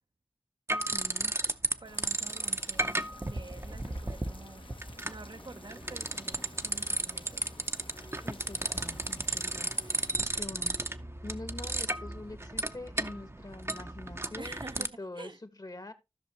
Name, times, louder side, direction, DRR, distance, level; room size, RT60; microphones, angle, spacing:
sound 1, 0.7-1.7 2.0-14.9, right 2 dB, 30° right, 0.7 m, -34 dB
voice 1, 0.9-1.3 8.2-10.8 11.2-15.9, left 2 dB, 45° left, 1.3 m, -45 dB
sound 2, 1.8-10.2, left 3 dB, 70° left, 1.1 m, -53 dB
voice 2, 1.8-4.7 5.0-7.5 14.4-15.4, right 3 dB, 60° right, 0.7 m, -48 dB
14.0 x 6.3 x 2.9 m
wide cardioid pair, 60°, 9 cm